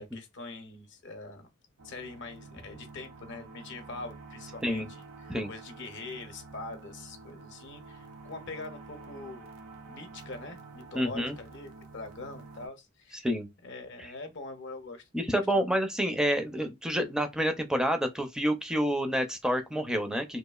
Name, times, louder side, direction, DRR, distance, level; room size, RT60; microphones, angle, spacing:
voice 1, 0.0-1.5 1.8-9.5 9.9-13.3 13.6-15.6, left 3 dB, 55° left, 0.6 m, -43 dB
sound 1, 1.8-12.7, right 3 dB, 85° right, 0.5 m, -49 dB
voice 2, 10.9-11.4 13.2-13.5 15.1-20.4, equal, 5° right, 0.4 m, -28 dB
2.9 x 2.3 x 2.3 m
head